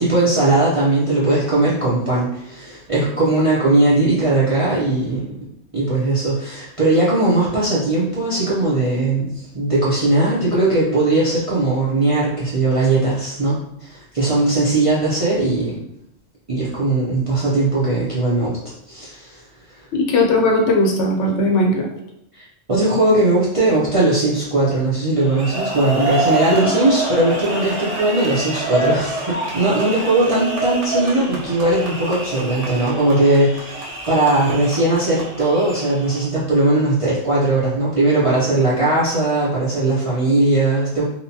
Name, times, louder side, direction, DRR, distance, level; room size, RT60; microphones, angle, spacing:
voice 1, 0.0-5.3 5.7-15.8 16.5-18.6 18.9-19.4 22.3-41.0, right 2 dB, 45° right, -8 dB, 0.4 m, -19 dB
voice 2, 19.9-21.9 26.5-26.7, left 1 dB, 80° left, 1 dB, 0.9 m, -18 dB
sound 1, 25.2-36.2, right 2 dB, 85° right, 1.0 m, -26 dB
2.8 x 2.1 x 2.6 m, 0.79 s
omnidirectional pair, 1.2 m